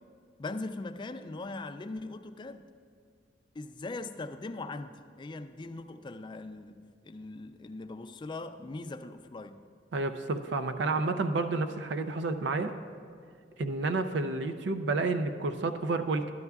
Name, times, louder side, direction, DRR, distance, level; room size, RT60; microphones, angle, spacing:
voice 1, 0.4-2.7 3.5-9.7, left 2 dB, 25° left, 0.4 m, -40 dB
voice 2, 9.9-12.7 13.6-16.3, right 3 dB, 75° right, 0.5 m, -30 dB
13.0 x 11.0 x 2.3 m
head